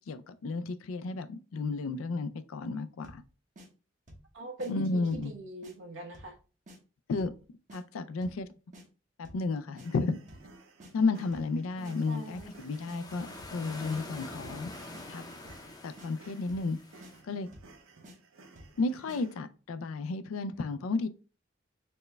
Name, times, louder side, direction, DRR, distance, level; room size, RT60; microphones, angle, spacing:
voice 1, 0.1-3.2 4.7-5.3 7.1-7.3 7.7-8.5 9.2-10.2 10.9-14.7 15.1-15.2 15.8-16.8 17.2-17.5 18.8-21.1, left 3 dB, 85° left, 0.4 m, -32 dB
sound 1, 3.0-3.3 3.6-3.7 4.1-4.3 4.6-4.7 5.1-5.3 5.6-5.8 6.1-6.4 6.7-6.8 7.2-7.4 7.7-7.8 8.2-8.4 8.7-8.9 9.2-9.5 9.8-9.9 10.3-10.5 10.8-10.9 11.3-11.5 11.8-12.0 12.3-12.6 12.9-13.0 13.4-13.6 13.9-14.0 14.4-14.6 14.9-15.1 15.5-15.7 16.0-16.1 16.5-16.7 17.0-17.1 17.5-17.7 18.0-18.2 18.6-18.8 19.1-19.2, equal, 40° right, 0.9 m, -51 dB
voice 2, 4.3-6.4 11.8-12.5, right 1 dB, 65° right, 1.0 m, -42 dB
sound 2, 9.8-19.4, right 3 dB, 85° right, 0.6 m, -56 dB
sound 3, 11.8-17.2, left 2 dB, 20° left, 0.6 m, -47 dB
4.3 x 2.1 x 3.3 m
head